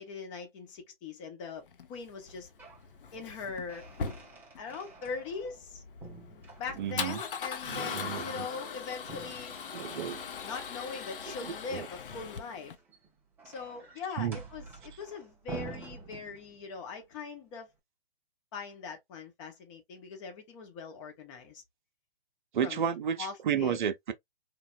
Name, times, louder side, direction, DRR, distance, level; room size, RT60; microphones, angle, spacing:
voice 1, 0.0-2.5 3.1-3.8 4.6-5.8 6.3-9.5 10.4-12.7 13.4-17.7 18.5-21.6 22.6-22.8 23.2-23.8, left 5 dB, 30° left, 0.9 m, -41 dB
Male speech man speaking / Car / Engine starting, 1.7-12.7, left 6 dB, 60° left, 0.7 m, -40 dB
sound 1, 2.2-2.9 3.2-5.7 6.0-7.2 9.0-10.6 12.6-16.8, right 4 dB, 5° right, 0.5 m, -48 dB
voice 2, 6.8-7.2 7.7-8.5 9.7-10.2 11.4-11.9 14.2-14.4 22.5-24.1, right 8 dB, 55° right, 0.6 m, -32 dB
3.3 x 2.2 x 2.3 m
figure-of-eight pair, 130°, 30 cm